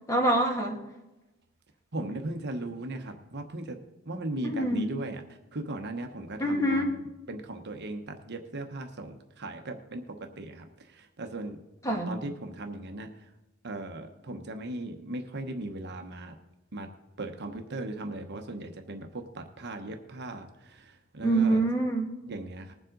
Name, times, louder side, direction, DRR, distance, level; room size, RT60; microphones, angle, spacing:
voice 1, 0.1-0.8 4.4-4.9 6.4-6.9 11.8-12.2 21.2-22.1, right 1 dB, 15° left, 1 dB, 1.8 m, -25 dB
voice 2, 1.9-3.8 4.1-7.0 7.3-11.6 11.9-13.3 13.6-16.3 16.7-16.9 17.2-21.6 22.3-22.7, right 2 dB, 55° right, 5 dB, 1.0 m, -38 dB
20.5 x 7.3 x 3.9 m, 1.0 s
head